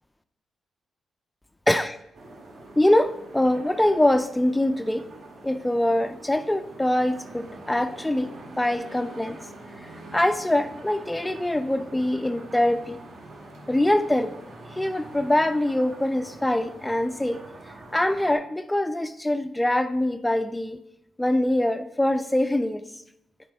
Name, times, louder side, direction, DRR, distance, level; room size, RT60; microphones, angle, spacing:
voice 1, 1.7-2.0 2.8-5.0 5.4-8.3 8.6-9.4 10.1-13.0 13.7-14.3 14.8-17.4 17.9-20.8 21.2-22.8, left 1 dB, 10° left, 10 dB, 0.3 m, -23 dB
sound 1, 2.1-18.4, right 2 dB, 75° right, 1.7 m, -45 dB
7.7 x 4.3 x 4.2 m, 0.79 s
cardioid pair, 105°, 0 cm